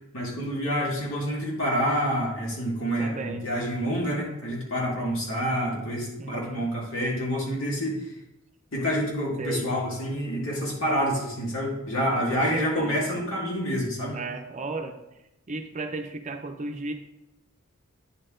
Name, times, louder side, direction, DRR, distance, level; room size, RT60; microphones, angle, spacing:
voice 1, 0.1-8.1 8.7-14.2, equal, 75° left, -4 dB, 2.3 m, -28 dB
voice 2, 3.0-3.4 6.1-6.7 9.4-9.7 12.1-13.1 14.1-15.0 15.5-16.9, right 3 dB, 35° right, 5 dB, 0.6 m, -35 dB
9.6 x 4.4 x 3.8 m, 0.88 s
head